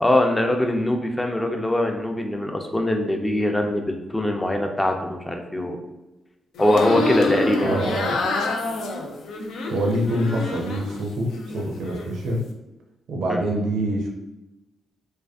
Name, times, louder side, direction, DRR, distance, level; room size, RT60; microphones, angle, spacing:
voice 1, 0.0-5.8 6.6-7.8 13.3-13.4, left 1 dB, 15° left, 3 dB, 0.5 m, -22 dB
sound 1, 6.5-11.0 11.3-12.1, left 2 dB, 75° left, 0.3 m, -27 dB
voice 2, 7.6-8.3 9.7-12.4 13.1-14.1, right 1 dB, 75° right, 0 dB, 0.4 m, -25 dB
2.4 x 2.3 x 2.3 m, 1.0 s
supercardioid pair, 45°, 0 cm